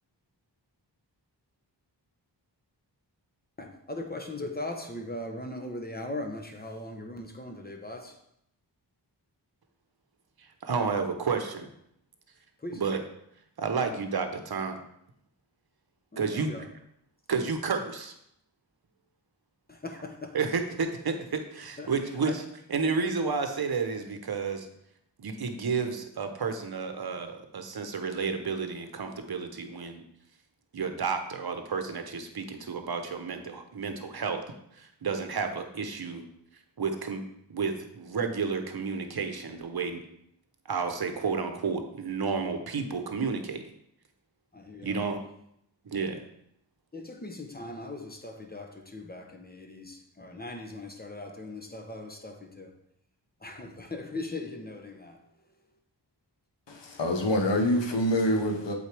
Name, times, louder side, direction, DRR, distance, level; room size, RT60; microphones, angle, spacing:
voice 1, 3.6-8.2 12.6-12.8 13.7-14.0 16.1-16.7 19.7-20.4 21.8-22.5 44.5-45.1 46.9-52.7 53.4-55.5, left 2 dB, 20° left, 4 dB, 1.0 m, -39 dB
voice 2, 10.6-11.7 12.8-13.0 13.6-14.8 16.2-16.5 17.3-18.1 20.3-22.3 22.7-24.7 25.2-30.0 30.7-34.4 34.8-36.2 36.8-37.2 37.5-40.0 40.7-43.6 44.8-45.2 45.8-46.2, right 5 dB, 60° right, 6 dB, 0.9 m, -31 dB
voice 3, 56.7-58.7, left 1 dB, 80° left, 3 dB, 1.1 m, -26 dB
8.0 x 4.2 x 3.4 m, 0.76 s
cardioid pair, 55°, 43 cm